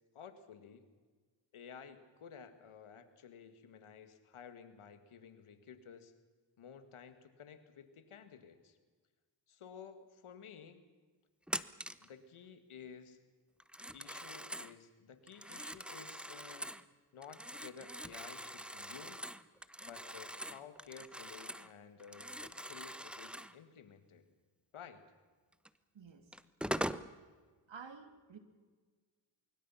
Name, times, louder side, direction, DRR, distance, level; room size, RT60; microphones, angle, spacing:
voice 1, 0.1-0.9 1.5-6.1 6.6-8.8 9.5-10.8 12.0-13.2 13.9-16.7 17.1-19.2 19.8-24.3 24.7-25.0, left 7 dB, 90° left, 9 dB, 2.2 m, -53 dB
Telephone, 11.5-12.1 13.6-14.7 15.3-16.8 17.2-21.7 22.0-23.5 25.6-25.7 26.3-27.1, equal, ahead, 1.0 m, -43 dB
voice 2, 25.9-26.3 27.7-28.4, right 5 dB, 65° right, 8 dB, 2.9 m, -51 dB
25.0 x 23.5 x 5.8 m, 1.4 s
cardioid pair, 60°, 48 cm